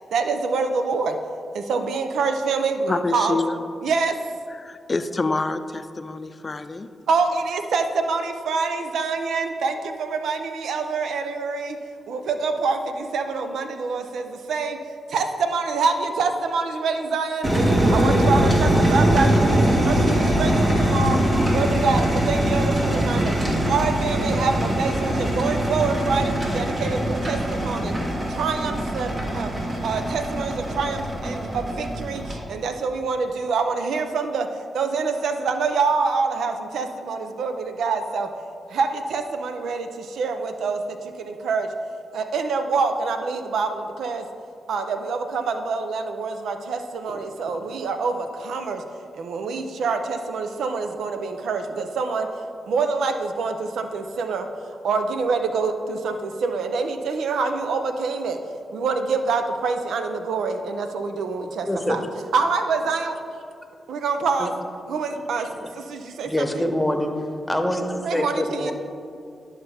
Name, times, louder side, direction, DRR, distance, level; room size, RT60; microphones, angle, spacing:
voice 1, 0.1-1.1 1.7-3.4 3.8-4.1 7.1-11.7 12.1-12.8 13.1-14.2 14.5-14.8 15.1-17.4 17.9-19.6 19.9-21.2 21.5-23.2 23.7-27.9 28.4-29.1 29.3-29.5 29.8-32.2 32.5-34.4 34.7-37.5 37.8-38.3 38.7-39.8 40.2-40.8 41.4-41.7 42.1-44.2 44.7-46.8 47.0-48.1 48.5-48.8 49.2-52.3 52.7-54.4 54.8-56.1 56.4-58.4 58.7-62.0 62.3-63.1 63.9-64.5 64.9-65.4 66.2-66.7 68.0-68.7, right 4 dB, 85° right, 7 dB, 0.5 m, -25 dB
voice 2, 2.9-3.6 4.6-6.9, left 3 dB, 40° left, 10 dB, 0.5 m, -27 dB
sound 1, 17.4-32.3, right 1 dB, 50° right, 2.0 m, -22 dB
voice 3, 61.7-62.0 64.4-64.5 65.1-65.2 65.5-65.7 66.2-67.1 67.5-68.7, left 1 dB, 10° left, 5 dB, 1.0 m, -25 dB
11.0 x 5.6 x 3.4 m, 2.3 s
cardioid pair, 55°, 0 cm